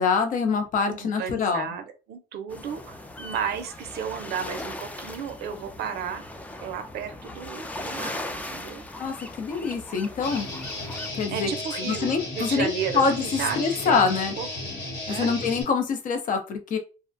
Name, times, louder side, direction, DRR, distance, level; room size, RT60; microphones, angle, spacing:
voice 1, 0.0-1.8 9.0-10.5 11.1-11.5 11.8-12.7 12.9-14.3 15.1-16.8, left 5 dB, 50° left, 6 dB, 0.6 m, -25 dB
voice 2, 0.9-6.3 6.6-8.8 11.3-14.5 15.1-15.3, right 7 dB, 70° right, 7 dB, 0.5 m, -33 dB
sound 1, 2.5-11.1, left 1 dB, 10° left, 0.3 m, -38 dB
Guitar, 10.2-15.6, left 1 dB, 85° left, 1.2 m, -34 dB
2.4 x 2.1 x 2.5 m, 0.32 s
cardioid pair, 110°, 17 cm